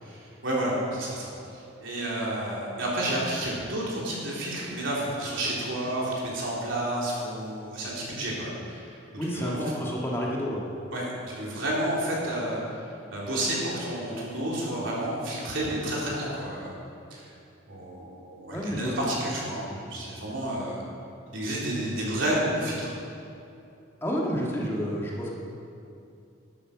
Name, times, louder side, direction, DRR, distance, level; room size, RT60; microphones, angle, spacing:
voice 1, 0.0-9.0 9.3-9.7 10.9-12.8 13.1-16.7 17.1-17.2 17.7-20.8 21.3-23.0, right 1 dB, 80° right, -5 dB, 3.6 m, -30 dB
voice 2, 9.2-10.6 18.5-18.9 24.0-25.3, equal, 15° left, -4 dB, 1.7 m, -30 dB
12.0 x 10.0 x 6.1 m, 2.7 s
head